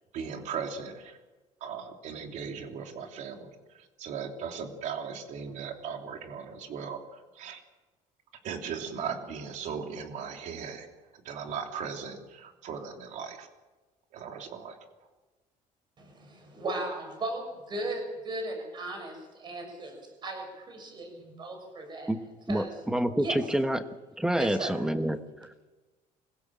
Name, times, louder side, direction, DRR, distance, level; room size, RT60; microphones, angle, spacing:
voice 1, 0.1-1.2 1.6-3.5 4.0-7.6 8.4-10.9 11.2-13.5 14.1-14.8, right 6 dB, 60° right, 3 dB, 3.1 m, -38 dB
voice 2, 16.0-22.1 22.5-22.8 23.2-23.4 24.3-24.7, right 2 dB, 30° right, 3 dB, 6.7 m, -37 dB
voice 3, 22.5-23.8 24.2-25.6, right 1 dB, 5° right, 9 dB, 1.1 m, -28 dB
26.0 x 16.0 x 7.4 m, 1.2 s
cardioid pair, 165°, 14 cm